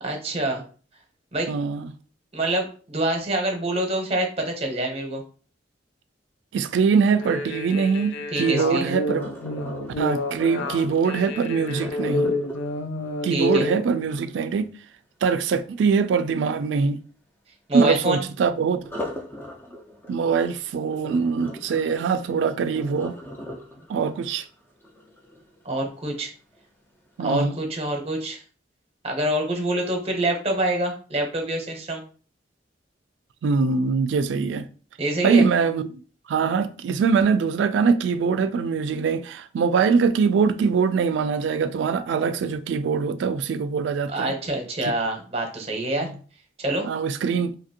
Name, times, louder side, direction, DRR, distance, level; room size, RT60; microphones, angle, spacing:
voice 1, 0.0-0.6 1.3-1.5 2.3-5.2 8.3-9.0 13.3-13.7 17.7-18.2 25.6-26.3 27.2-28.4 29.0-32.0 35.0-35.5 44.1-46.1 46.6-46.9, right 1 dB, 35° right, 0.8 m, -26 dB
voice 2, 1.5-1.9 6.5-9.3 10.0-12.3 13.2-14.7 15.2-17.0 17.7-18.8 20.1-23.2 23.9-24.5 27.2-27.6 33.4-34.7 35.2-36.0 36.3-44.3 44.8-44.9 46.0-46.1 46.8-47.5, right 5 dB, 80° right, 0.3 m, -23 dB
sound 1, 7.1-13.8, left 2 dB, 90° left, 0.4 m, -29 dB
Sink (filling or washing), 8.4-14.4 18.8-25.8 26.3-26.6 27.1-27.2, equal, 10° left, 0.4 m, -39 dB
2.8 x 2.5 x 2.7 m
head